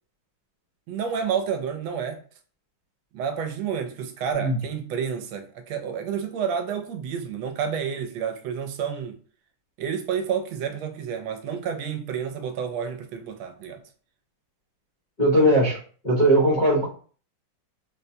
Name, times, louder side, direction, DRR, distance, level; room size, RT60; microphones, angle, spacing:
voice 1, 0.9-2.2 3.1-9.2 9.8-13.8, right 7 dB, 80° right, 1.3 m, -30 dB
voice 2, 15.2-15.8 16.0-16.9, right 1 dB, 60° left, 0.4 m, -19 dB
3.9 x 2.1 x 2.7 m
omnidirectional pair, 2.2 m